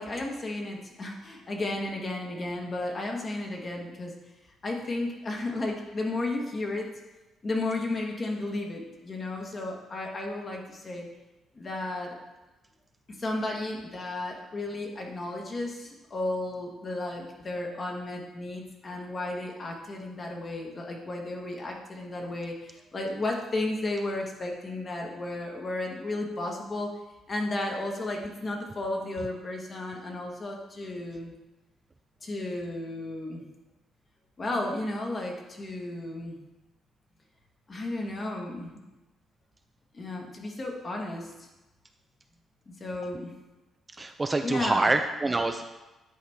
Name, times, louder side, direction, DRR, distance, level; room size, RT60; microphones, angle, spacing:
voice 1, 0.0-4.1 4.6-6.9 7.4-11.0 11.5-12.2 13.2-26.9 27.3-31.3 32.2-33.4 34.4-36.4 37.7-38.8 39.9-41.5 42.7-43.3 44.4-44.9, left 2 dB, 35° left, 0 dB, 1.5 m, -33 dB
voice 2, 44.0-45.6, right 2 dB, 25° right, 6 dB, 0.4 m, -26 dB
10.0 x 4.2 x 3.5 m, 1.1 s
cardioid pair, 90°, 0 cm